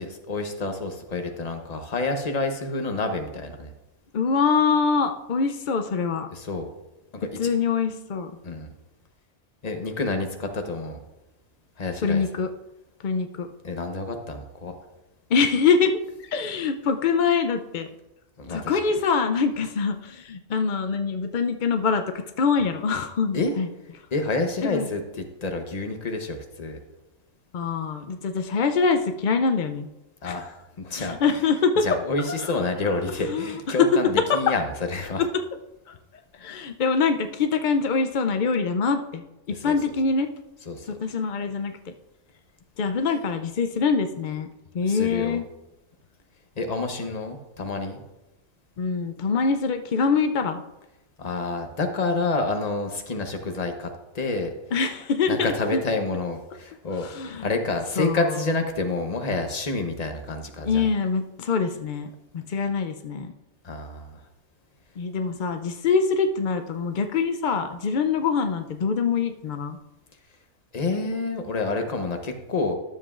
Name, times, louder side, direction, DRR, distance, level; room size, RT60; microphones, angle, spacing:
voice 1, 0.0-3.7 6.3-6.7 7.2-7.5 8.4-8.7 9.6-11.0 11.8-12.2 13.6-14.7 18.4-18.8 23.3-23.5 24.1-25.0 25.4-26.8 30.2-31.2 31.8-34.6 34.9-35.2 39.7-39.8 40.7-41.0 44.9-45.4 46.6-48.0 51.2-54.5 55.3-60.8 63.6-64.2 70.7-72.7, left 3 dB, 35° left, 5 dB, 0.8 m, -28 dB
voice 2, 4.1-6.3 7.4-8.3 12.0-12.5 13.0-13.5 15.3-17.9 18.5-23.7 24.6-24.9 27.5-29.9 30.2-30.4 31.0-31.8 32.4-32.5 32.8-33.9 34.3-34.4 35.2-35.3 35.9-36.0 36.3-40.3 40.9-41.8 42.8-45.4 48.8-50.6 54.7-55.8 56.9-57.5 58.0-58.5 60.6-63.3 65.0-69.8, left 5 dB, 90° left, 6 dB, 0.4 m, -24 dB
12.5 x 7.3 x 2.4 m, 0.96 s
omnidirectional pair, 1.5 m